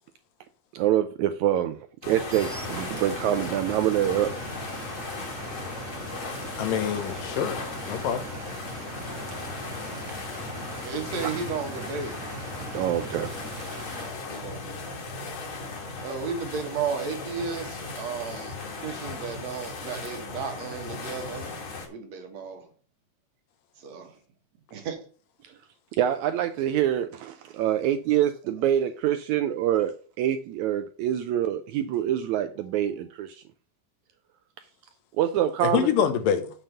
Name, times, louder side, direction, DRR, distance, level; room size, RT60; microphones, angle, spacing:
voice 1, 0.7-1.8 2.1-4.4 4.7-4.9 10.1-10.2 12.7-13.6 25.4-25.5 26.0-33.4 35.2-35.9, right 11 dB, 80° right, 1.7 m, -26 dB
sound 1, 2.0-21.9, left 3 dB, 45° left, 2.4 m, -37 dB
sound 2, 2.3-14.1, right 2 dB, 40° right, 1.0 m, -40 dB
voice 2, 6.6-7.6 7.9-8.2 35.6-36.5, left 8 dB, 85° left, 2.7 m, -25 dB
voice 3, 10.8-12.4 14.3-14.7 16.0-21.6 21.9-22.7 23.8-24.2 24.7-25.1, right 5 dB, 60° right, 2.5 m, -34 dB
7.3 x 5.5 x 6.6 m
omnidirectional pair, 3.8 m